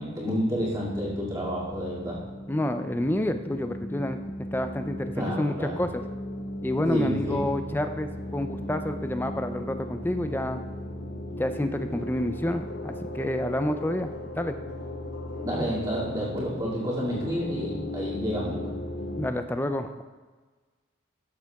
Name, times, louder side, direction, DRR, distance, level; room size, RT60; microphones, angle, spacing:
voice 1, 0.0-2.2 5.2-5.8 6.8-7.4 15.4-18.7, equal, 20° right, -6 dB, 2.2 m, -30 dB
sound 1, 0.5-19.3, left 1 dB, 55° left, 0.6 m, -37 dB
voice 2, 2.5-4.2 4.5-6.0 6.6-10.6 11.4-14.6 19.2-19.9, left 1 dB, 10° left, 8 dB, 0.4 m, -29 dB
13.5 x 7.5 x 2.3 m, 1.4 s
head